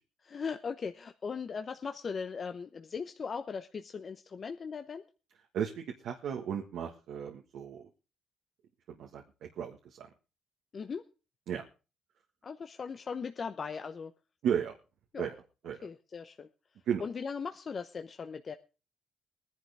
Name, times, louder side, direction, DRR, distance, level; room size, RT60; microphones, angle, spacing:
voice 1, 0.2-5.0 10.7-11.0 12.4-14.1 15.1-15.3 15.8-16.5 17.0-18.5, left 5 dB, 45° left, 7 dB, 0.9 m, -38 dB
voice 2, 5.5-7.9 9.0-9.2 9.6-10.1 11.5-11.6 14.4-14.8 15.2-15.3 15.6-15.8 16.9-17.0, right 8 dB, 80° right, 2 dB, 1.6 m, -34 dB
20.0 x 11.0 x 3.5 m, 0.33 s
cardioid pair, 90°, 0 cm